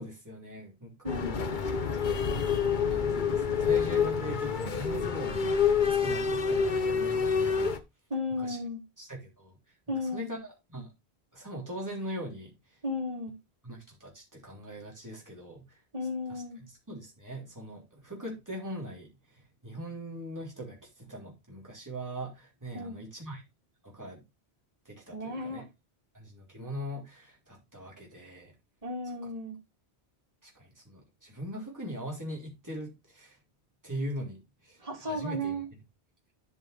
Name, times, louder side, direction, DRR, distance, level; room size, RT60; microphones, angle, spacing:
voice 1, 0.0-1.4 1.6-2.2 2.8-5.7 6.0-7.8 8.4-8.6 9.0-9.5 10.1-10.9 11.3-12.8 13.6-15.8 16.3-16.4 16.9-23.4 23.8-24.2 24.8-25.6 26.1-28.5 30.4-33.4 33.8-35.6, equal, 15° right, 3.2 m, -41 dB
voice 2, 1.0-1.4 8.1-8.8 9.9-10.3 12.8-13.3 15.9-16.6 22.7-23.0 25.1-25.6 28.8-29.6 34.8-35.7, left 1 dB, 35° right, 2.6 m, -34 dB
sound 1, 1.1-7.8, left 6 dB, 50° left, 1.0 m, -27 dB
12.5 x 5.5 x 3.3 m
omnidirectional pair, 1.1 m